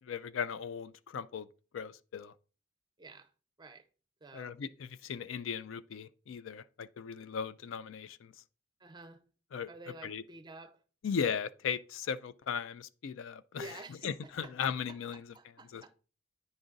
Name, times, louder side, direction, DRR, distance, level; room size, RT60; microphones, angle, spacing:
voice 1, 0.0-1.5 1.7-2.3 4.3-8.3 9.5-9.7 10.0-10.2 11.0-13.7 14.0-15.3 15.7-15.9, left 7 dB, 70° left, 0.4 m, -37 dB
voice 2, 3.0-3.3 3.6-3.9 4.2-4.6 8.8-9.2 9.7-10.8 13.5-15.0 15.3-15.9, right 2 dB, 20° right, 0.5 m, -50 dB
9.5 x 3.9 x 3.8 m
head